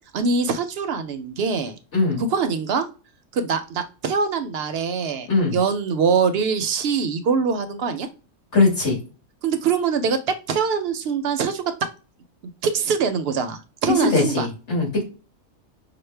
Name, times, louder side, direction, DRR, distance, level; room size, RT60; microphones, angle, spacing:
voice 1, 0.1-1.7 2.2-2.9 3.3-8.1 9.4-10.2 10.5-11.6 12.6-14.5, right 5 dB, 65° right, 8 dB, 0.7 m, -23 dB
voice 2, 8.5-9.0 13.9-15.0, left 3 dB, 65° left, -1 dB, 2.2 m, -20 dB
5.8 x 2.1 x 3.2 m, 0.33 s
omnidirectional pair, 1.3 m